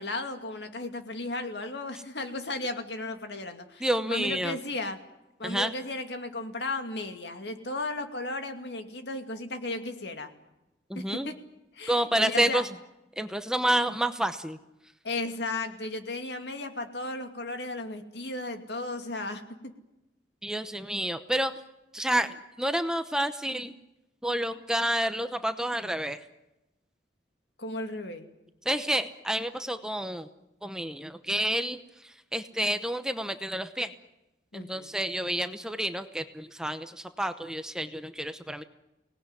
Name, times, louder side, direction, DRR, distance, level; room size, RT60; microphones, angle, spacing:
voice 1, 0.0-5.0 5.4-10.3 10.9-11.3 11.7-12.6 15.0-19.7 27.6-28.3 34.5-34.9, left 2 dB, 65° left, 6 dB, 2.4 m, -35 dB
voice 2, 3.8-4.6 5.4-5.7 10.9-11.3 11.9-12.7 13.2-14.6 20.4-21.5 21.9-23.7 24.2-26.2 28.6-30.3 30.6-33.9 34.5-38.6, right 1 dB, 5° right, 9 dB, 0.8 m, -29 dB
25.0 x 19.0 x 9.8 m, 0.96 s
head